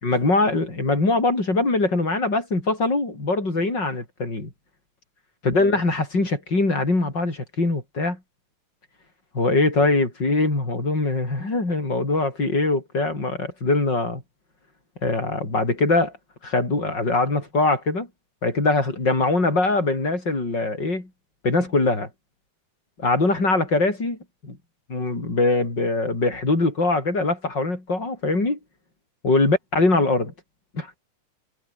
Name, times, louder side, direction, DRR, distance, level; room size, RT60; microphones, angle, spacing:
voice 1, 0.0-4.5 5.4-8.2 9.3-14.2 15.0-16.1 16.4-18.1 18.4-21.1 21.4-22.1 23.0-24.2 24.4-24.6 24.9-28.6 29.2-30.3 30.7-31.0, left 2 dB, 35° left, 7.4 m, -22 dB
omnidirectional pair, 3.4 m